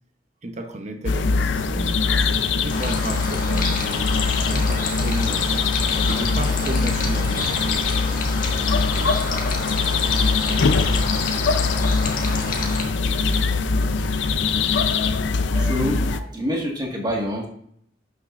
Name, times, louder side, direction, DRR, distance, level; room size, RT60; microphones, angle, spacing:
voice 1, 0.4-2.0 2.6-5.7 6.1-7.5 10.7-11.5, right 1 dB, 40° right, 0.8 m, -34 dB
sound 1, 1.1-16.2, left 4 dB, 85° left, 0.5 m, -22 dB
sound 2, 2.7-12.8, left 3 dB, 45° left, 1.6 m, -29 dB
voice 2, 15.5-17.5, equal, 25° right, 1.7 m, -26 dB
11.5 x 6.6 x 2.5 m
head